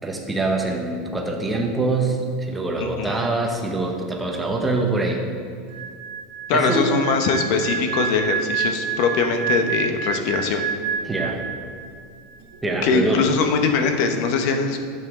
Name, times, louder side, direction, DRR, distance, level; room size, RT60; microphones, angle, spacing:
voice 1, 0.0-5.2 6.5-6.9 11.0-11.4 12.6-13.3, right 2 dB, 10° right, 1 dB, 0.9 m, -24 dB
voice 2, 2.8-3.2 6.5-10.6 12.8-14.8, left 5 dB, 50° left, 5 dB, 0.9 m, -22 dB
sound 1, 5.7-12.1 12.3-12.6, right 7 dB, 70° right, 1.6 m, -28 dB
10.5 x 8.1 x 3.7 m, 2.2 s
supercardioid pair, 165°, 0 cm